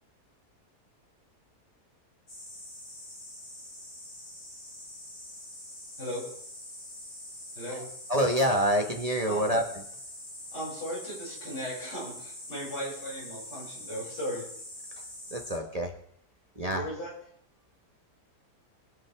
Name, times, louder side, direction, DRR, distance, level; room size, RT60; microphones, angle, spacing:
sound 1, 2.3-15.6, left 1 dB, 40° left, 3.1 m, -44 dB
voice 1, 7.5-7.9 9.2-9.5 10.5-14.5 16.7-17.1, equal, 85° left, -6 dB, 7.4 m, -37 dB
voice 2, 8.1-9.6 15.3-15.9 16.5-16.8, equal, 25° right, 2 dB, 1.2 m, -26 dB
22.5 x 8.8 x 3.5 m, 0.68 s
omnidirectional pair, 1.7 m